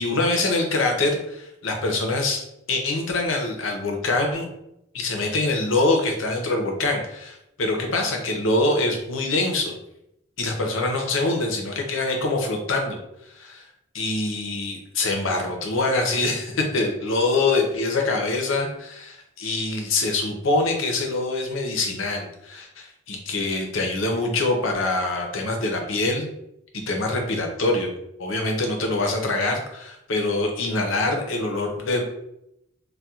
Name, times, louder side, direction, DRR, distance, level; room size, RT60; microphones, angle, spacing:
voice 1, 0.0-2.4 2.7-4.5 4.9-9.7 10.4-13.0 13.3-13.7 13.9-26.3 26.7-27.9 28.2-32.0, left 2 dB, 80° left, 2 dB, 0.7 m, -24 dB
4.2 x 2.2 x 2.3 m, 0.82 s
head